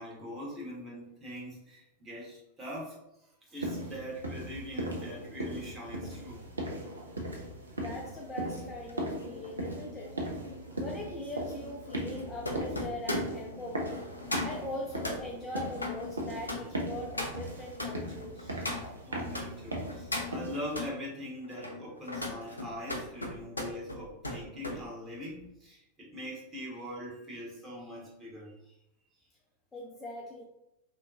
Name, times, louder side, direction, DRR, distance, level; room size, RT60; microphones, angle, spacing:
voice 1, 0.0-6.5 19.0-28.7, equal, 15° right, -5 dB, 1.0 m, -42 dB
sound 1, 3.6-20.9, equal, 75° right, 0.4 m, -38 dB
voice 2, 7.8-10.1 10.8-14.0 14.4-18.6 29.7-30.4, left 1 dB, 15° left, -2 dB, 0.4 m, -41 dB
sound 2, 8.8-19.5 19.9-20.9 21.4-24.8 25.1-25.5, left 2 dB, 80° left, 0.4 m, -39 dB
2.7 x 2.2 x 2.4 m, 0.85 s
figure-of-eight pair, 90°, 0 cm